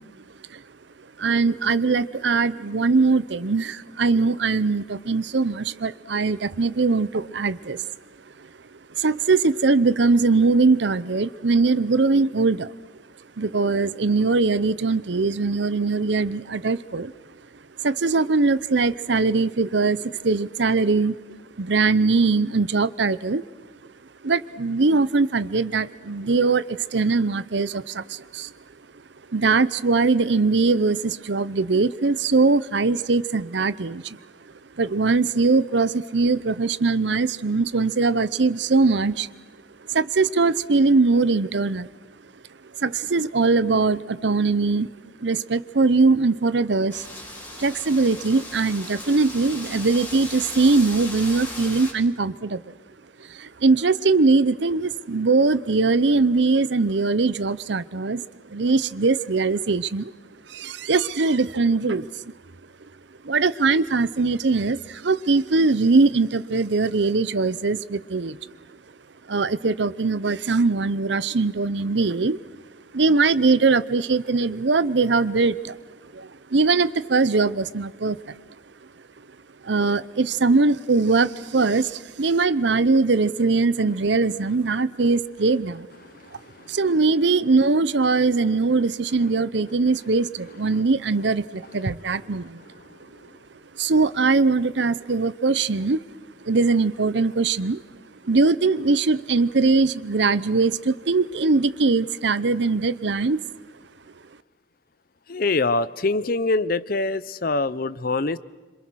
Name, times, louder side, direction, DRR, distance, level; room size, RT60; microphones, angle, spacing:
voice 1, 1.2-7.9 8.9-12.7 13.4-17.1 17.8-21.2 21.6-23.4 24.2-28.5 29.3-34.2 34.8-39.3 39.9-41.9 42.8-44.9 45.2-47.1 47.6-52.7 53.3-58.2 58.5-60.1 60.5-62.1 63.2-68.4 69.3-72.4 72.9-75.8 76.1-78.3 79.6-85.9 86.7-92.6 93.8-96.0 96.4-97.8 98.2-103.4, right 3 dB, 65° right, 16 dB, 0.7 m, -21 dB
Wind, 46.9-51.9, left 1 dB, 10° left, 3.4 m, -37 dB
voice 2, 105.3-108.4, left 3 dB, 50° left, 17 dB, 0.7 m, -24 dB
27.0 x 26.5 x 6.3 m, 1.2 s
head